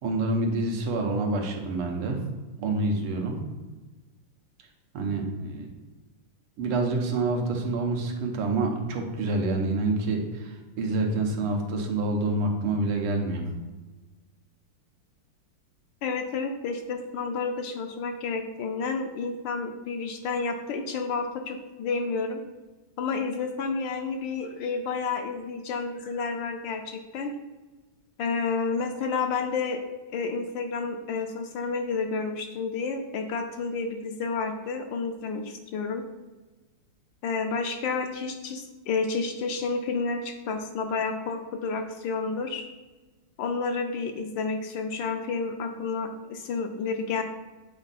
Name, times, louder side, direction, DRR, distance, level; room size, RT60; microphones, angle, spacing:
voice 1, 0.0-2.2 2.6-3.4 4.9-5.7 6.6-13.5, right 2 dB, 85° right, 2 dB, 1.9 m, -27 dB
voice 2, 16.0-22.4 23.0-27.3 28.2-29.8 30.1-36.0 37.2-42.6 43.4-47.2, left 4 dB, 70° left, 5 dB, 1.2 m, -30 dB
8.2 x 4.5 x 4.1 m, 1.2 s
omnidirectional pair, 2.4 m